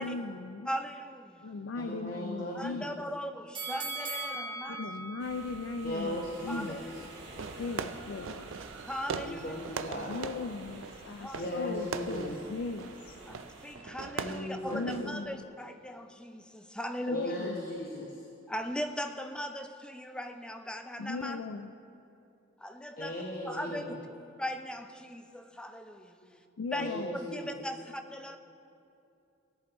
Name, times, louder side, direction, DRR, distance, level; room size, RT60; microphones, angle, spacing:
voice 1, 0.0-0.7 1.4-3.1 4.7-7.1 7.6-8.5 10.0-13.2 14.7-15.5 17.1-17.6 21.0-21.8 26.6-27.2, left 4 dB, 75° left, 8 dB, 0.4 m, -38 dB
voice 2, 0.7-1.4 2.6-4.8 6.5-6.8 8.9-9.5 11.2-11.5 13.3-17.3 18.5-21.4 22.6-23.1 23.5-23.8 24.4-26.1 26.7-26.9 27.3-28.4, equal, 5° left, 7 dB, 0.4 m, -39 dB
voice 3, 1.8-2.8 5.8-6.8 9.2-10.2 11.3-12.3 14.2-14.9 17.1-18.2 23.0-24.0 26.3-26.4 26.7-27.5, left 1 dB, 45° left, -2 dB, 1.0 m, -37 dB
sound 1, 3.5-6.6 7.1-7.2, right 3 dB, 25° right, 1.1 m, -40 dB
sound 2, 5.2-13.7, right 2 dB, 60° right, 2.6 m, -51 dB
Fireworks, 7.4-15.4, right 5 dB, 85° right, 0.5 m, -41 dB
17.0 x 11.0 x 3.0 m, 2.7 s
head